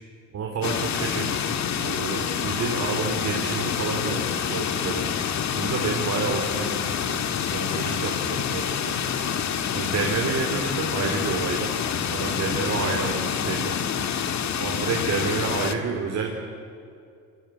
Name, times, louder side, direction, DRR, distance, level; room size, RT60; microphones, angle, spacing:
voice 1, 0.3-5.1 5.5-9.0 9.7-11.7 12.1-13.7 14.6-16.5, right 4 dB, 60° right, 1 dB, 3.6 m, -29 dB
sound 1, 0.6-15.7, left 8 dB, 65° left, 1.9 m, -27 dB
27.0 x 24.5 x 8.8 m, 2.5 s
cardioid pair, 90°, 30 cm